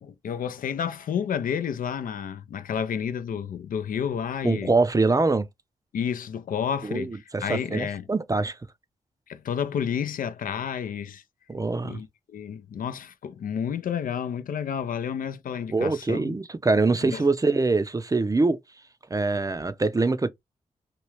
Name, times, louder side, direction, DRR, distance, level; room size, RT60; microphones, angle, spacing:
voice 1, 0.0-4.7 5.9-8.0 9.3-11.2 11.8-16.4 17.0-17.3, left 8 dB, 70° left, 0.4 m, -30 dB
voice 2, 4.4-5.5 6.8-8.6 11.5-12.0 15.7-18.6 19.1-20.3, right 3 dB, 25° right, 0.5 m, -24 dB
3.0 x 2.3 x 3.0 m
supercardioid pair, 40°, 15 cm